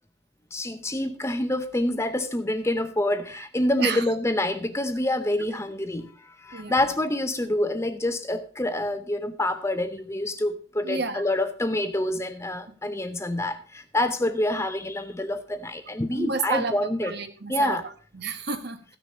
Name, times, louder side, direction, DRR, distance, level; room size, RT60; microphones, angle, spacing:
voice 1, 0.5-6.1 6.4-17.1 17.5-17.8, left 1 dB, 15° left, 9 dB, 0.7 m, -27 dB
voice 2, 6.5-6.9 10.8-11.3 16.1-18.8, right 4 dB, 55° right, 9 dB, 1.3 m, -31 dB
15.0 x 6.6 x 5.1 m, 0.40 s
head